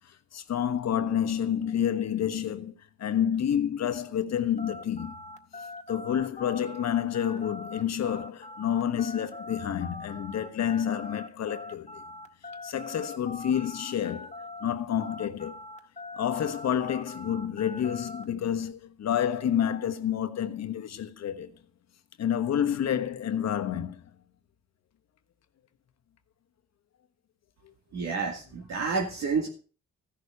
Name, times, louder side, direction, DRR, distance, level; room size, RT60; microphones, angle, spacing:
voice 1, 0.3-2.7 3.0-5.2 5.9-12.0 12.6-14.3 14.6-15.6 16.1-21.5 22.2-24.0, left 9 dB, 60° left, 1.3 m, -29 dB
sound 1, 4.6-14.7 15.0-18.3, left 2 dB, 25° left, 1.7 m, -42 dB
voice 2, 27.9-29.5, right 4 dB, 65° right, 2.4 m, -29 dB
15.0 x 6.5 x 6.8 m
cardioid pair, 90°, 30 cm